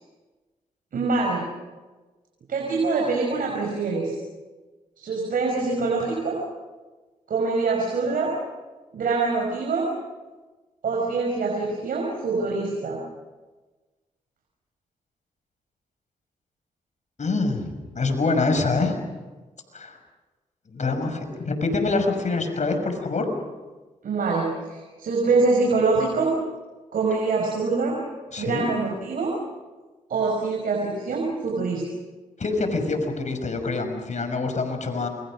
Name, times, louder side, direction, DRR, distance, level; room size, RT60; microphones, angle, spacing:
voice 1, 0.9-1.4 2.5-4.2 5.0-6.4 7.3-8.3 8.9-9.9 10.8-13.0 24.0-26.3 26.9-28.0 28.4-29.3 30.1-31.8, right 3 dB, 75° right, -1 dB, 5.8 m, -24 dB
voice 2, 17.2-19.0 19.7-20.0 20.7-23.3 28.3-28.6 32.4-35.1, left 3 dB, 55° left, 6 dB, 6.1 m, -25 dB
28.5 x 23.5 x 6.4 m, 1.3 s
supercardioid pair, 50°, 15 cm